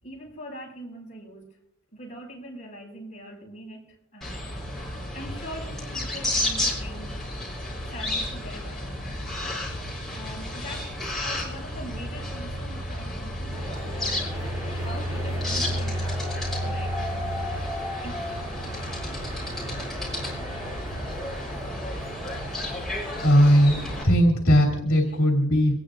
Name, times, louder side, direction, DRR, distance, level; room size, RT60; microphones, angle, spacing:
voice 1, 0.0-1.5 1.9-7.3 7.9-9.2 10.1-14.3 14.7-18.2 25.0-25.2, equal, 30° left, -3 dB, 6.1 m, -43 dB
sound 1, 4.2-24.0, left 1 dB, ahead, 4.4 m, -32 dB
sound 2, 13.5-24.1, left 1 dB, 15° right, 5.2 m, -37 dB
voice 2, 23.2-25.8, equal, 65° left, 0 dB, 3.1 m, -19 dB
24.0 x 18.5 x 2.6 m, 0.81 s
head